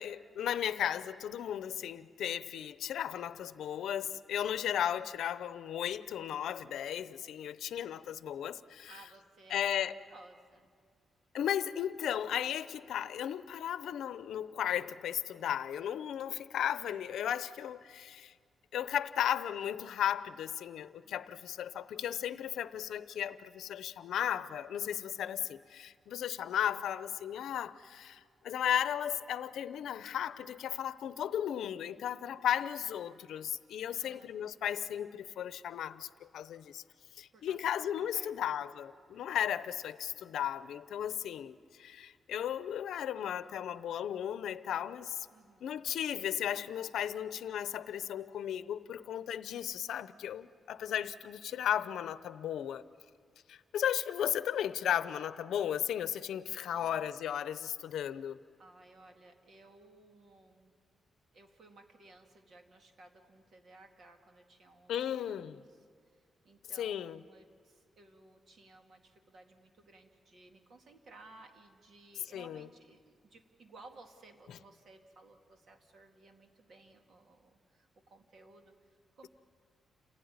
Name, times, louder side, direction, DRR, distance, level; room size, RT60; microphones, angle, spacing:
voice 1, 0.0-8.9 9.5-9.9 11.3-18.3 18.7-36.8 37.2-45.2 45.6-52.8 53.5-58.4 64.9-65.6 66.8-67.2 72.3-72.7 74.5-74.6, left 10 dB, 90° left, 0.7 m, -35 dB
voice 2, 4.6-5.0 8.9-9.7 10.0-10.7 21.0-21.6 33.9-34.3 37.3-38.6 45.3-45.8 56.6-57.0 58.6-60.7 61.3-65.9 66.1-79.3, right 2 dB, 55° right, 2.2 m, -58 dB
28.5 x 16.0 x 9.6 m
wide cardioid pair, 145°, 0 cm